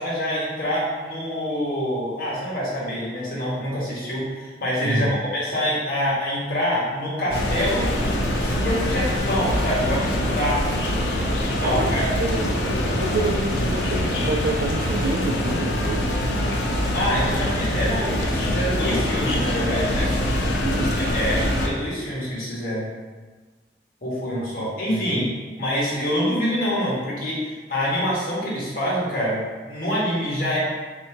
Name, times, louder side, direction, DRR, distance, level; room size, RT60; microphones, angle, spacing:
voice 1, 0.0-10.7 11.4-12.0 16.9-20.1 21.1-22.9 24.0-25.3 25.6-30.6, equal, 55° left, -7 dB, 1.4 m, -26 dB
voice 2, 4.8-5.2 11.6-16.1 20.6-21.0 24.6-25.0, right 2 dB, 55° right, 6 dB, 0.4 m, -28 dB
sound 1, 7.3-21.7, left 1 dB, 85° left, 0.6 m, -24 dB
4.2 x 2.5 x 4.4 m, 1.4 s
head